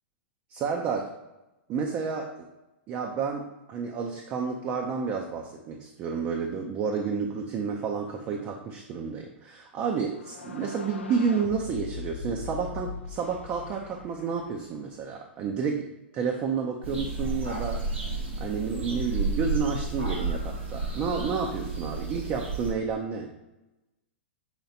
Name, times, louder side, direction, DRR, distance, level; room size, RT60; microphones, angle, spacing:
voice 1, 0.5-1.1 1.7-2.5 2.9-18.1 18.4-23.3, right 5 dB, 35° right, 2 dB, 0.5 m, -30 dB
sound 1, 10.1-14.9, left 4 dB, 90° left, 0.5 m, -41 dB
sound 2, 16.8-22.7, right 3 dB, 85° right, 1.4 m, -32 dB
5.8 x 3.2 x 2.7 m, 1.0 s
hypercardioid pair, 110°, 6 cm